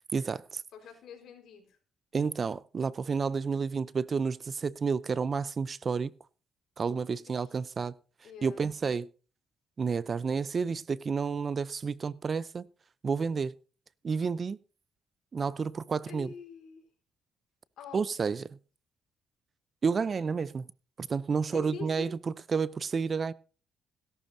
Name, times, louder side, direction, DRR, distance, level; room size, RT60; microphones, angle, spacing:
voice 1, 0.1-0.6 2.1-6.1 6.8-7.9 8.4-9.1 9.8-12.7 13.0-13.6 14.0-14.6 15.3-16.3 17.9-18.6 19.8-20.7 21.0-22.1 22.5-23.3, right 5 dB, 40° right, 0.6 m, -30 dB
voice 2, 0.7-1.8 7.3-7.5 8.2-8.7 16.1-16.9 17.8-18.1 21.4-22.1, left 5 dB, 70° left, 4.6 m, -45 dB
17.0 x 11.5 x 2.7 m
cardioid pair, 90°, 0 cm